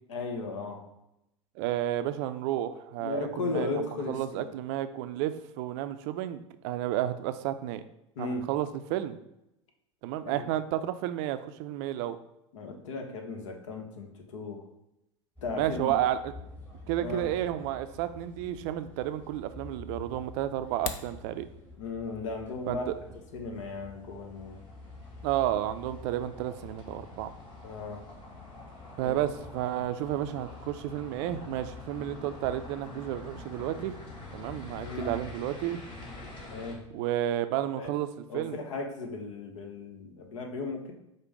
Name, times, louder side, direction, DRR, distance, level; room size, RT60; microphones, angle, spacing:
voice 1, 0.1-0.8 3.0-4.5 8.2-8.4 10.2-10.5 12.5-14.6 15.4-16.0 17.0-17.3 21.8-22.8 23.3-24.6 27.6-28.1 29.0-29.3 34.8-35.2 36.5-36.8 37.8-37.9 38.3-40.9, left 3 dB, 70° left, 3 dB, 0.9 m, -36 dB
voice 2, 1.6-7.8 8.2-9.2 10.0-12.2 15.6-16.3 16.9-21.5 22.7-22.8 25.2-27.3 29.0-34.0 34.3-35.8 36.9-38.1 38.3-38.6, right 12 dB, 55° right, 11 dB, 0.4 m, -31 dB
sound 1, 15.3-35.3, left 3 dB, 10° left, 1.3 m, -50 dB
sound 2, 20.6-21.2, left 7 dB, 55° left, 0.5 m, -37 dB
sound 3, 22.2-36.8, left 3 dB, 35° left, 1.5 m, -46 dB
5.1 x 2.2 x 4.7 m, 0.85 s
hypercardioid pair, 90°, 16 cm